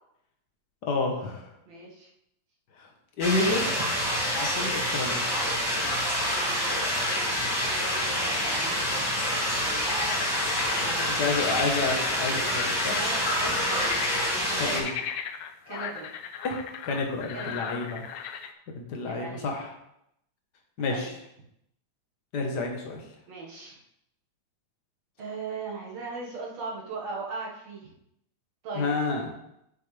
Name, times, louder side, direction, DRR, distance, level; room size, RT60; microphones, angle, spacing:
voice 1, 0.8-1.5 2.8-2.9 3.2-3.6 4.3-5.2 11.1-13.0 14.6-14.9 16.4-16.6 16.8-18.1 18.7-19.7 20.8-21.1 22.3-23.0 28.7-29.3, left 3 dB, 45° left, 1 dB, 1.4 m, -29 dB
voice 2, 1.7-2.1 3.4-3.5 3.8-3.9 6.7-9.3 9.6-9.9 10.7-11.3 12.9-13.6 14.5-14.8 15.7-16.1 17.3-17.7 19.1-19.5 20.8-21.1 23.3-23.8 25.2-27.9 28.6-29.0, right 3 dB, 65° right, -3 dB, 2.9 m, -39 dB
sound 1, 3.2-14.8, equal, 10° left, 2.3 m, -27 dB
sound 2, 9.8-18.5, left 8 dB, 80° left, 1.8 m, -37 dB
8.5 x 7.6 x 3.4 m, 0.78 s
omnidirectional pair, 3.4 m